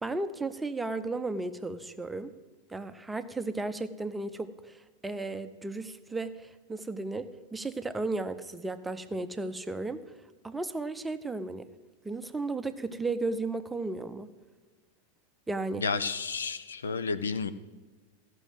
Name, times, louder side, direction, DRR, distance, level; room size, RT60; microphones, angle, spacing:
voice 1, 0.0-2.3 2.7-10.2 10.4-11.6 12.0-14.3 15.5-15.9, right 3 dB, 10° right, 10 dB, 0.7 m, -34 dB
voice 2, 15.8-17.5, left 5 dB, 70° left, 13 dB, 0.6 m, -31 dB
14.5 x 6.2 x 7.8 m, 1.4 s
figure-of-eight pair, 90°, 0 cm